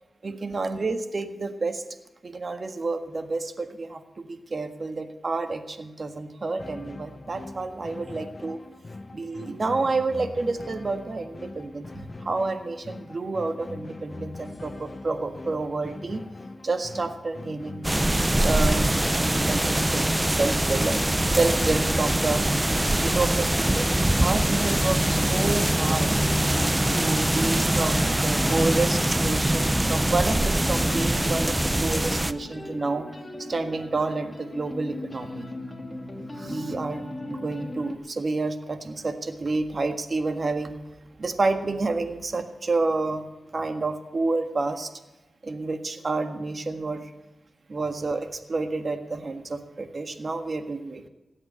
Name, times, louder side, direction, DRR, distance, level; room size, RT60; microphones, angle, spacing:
voice 1, 0.2-1.8 2.2-8.6 9.1-16.2 16.6-17.9 18.3-23.9 24.2-26.1 26.9-33.1 33.4-35.5 36.3-40.8 41.2-43.3 43.5-44.9 45.4-47.1 47.7-51.1, right 3 dB, 50° right, 8 dB, 1.7 m, -29 dB
sound 1, 6.6-22.6, left 3 dB, 40° left, 0.7 m, -42 dB
sound 2, 17.8-32.3, right 1 dB, 15° right, 0.8 m, -23 dB
sound 3, 25.2-38.0, left 1 dB, 25° left, 2.3 m, -38 dB
18.5 x 8.4 x 8.0 m, 1.1 s
cardioid pair, 55°, 0 cm